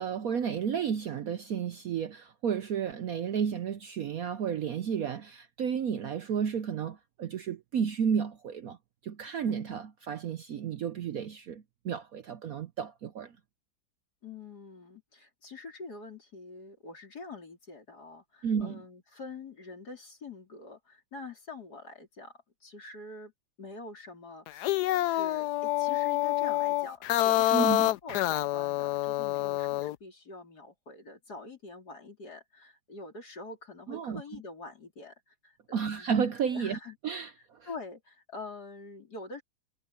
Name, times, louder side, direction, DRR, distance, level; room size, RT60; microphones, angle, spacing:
voice 1, 0.0-8.8 9.0-13.3 18.4-18.8 27.5-27.9 33.9-34.2 35.7-36.8 37.0-37.7, right 7 dB, 60° right, 1.0 m, -32 dB
voice 2, 14.2-23.3 23.6-36.1 36.5-37.0 37.7-39.4, left 3 dB, 55° left, 4.3 m, -45 dB
sound 1, 24.5-29.9, left 16 dB, 70° left, 1.0 m, -27 dB
omnidirectional pair, 2.1 m